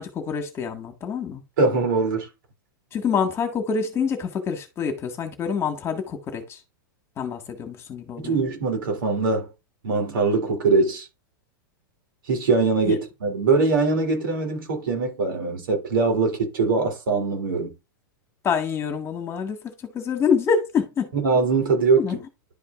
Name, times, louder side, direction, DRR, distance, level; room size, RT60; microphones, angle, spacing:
voice 1, 0.0-1.4 2.9-6.6 7.2-8.4 12.8-13.0 18.4-21.1 22.0-22.2, left 6 dB, 25° left, 1.8 m, -26 dB
voice 2, 1.6-2.3 8.2-9.5 9.8-11.1 12.3-17.7 21.1-22.2, right 4 dB, 80° right, 3.2 m, -22 dB
11.5 x 5.2 x 2.5 m
hypercardioid pair, 135°, 11 cm